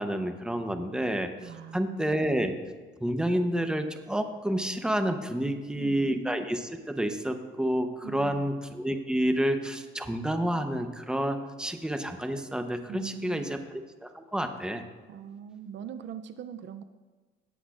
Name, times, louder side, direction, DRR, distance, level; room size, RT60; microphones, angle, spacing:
voice 1, 0.0-1.3 1.7-2.6 3.0-14.8, right 1 dB, 5° right, 7 dB, 0.9 m, -29 dB
voice 2, 1.4-2.0 5.4-6.1 8.0-8.5 12.9-13.6 15.1-16.8, right 8 dB, 65° right, 11 dB, 0.5 m, -41 dB
17.5 x 7.9 x 2.5 m, 1.3 s
cardioid pair, 90°, 20 cm